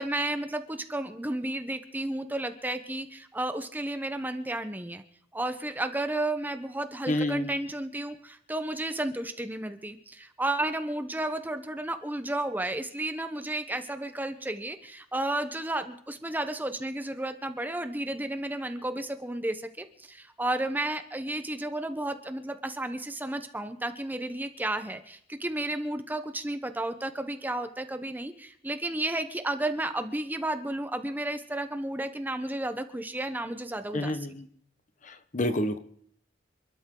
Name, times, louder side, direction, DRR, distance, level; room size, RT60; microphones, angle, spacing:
voice 1, 0.0-5.0 5.3-34.3, right 1 dB, 10° right, 9 dB, 0.8 m, -32 dB
voice 2, 7.1-7.5 33.9-34.3 35.3-35.8, left 1 dB, 40° left, 10 dB, 1.1 m, -27 dB
28.0 x 12.5 x 3.8 m, 0.63 s
head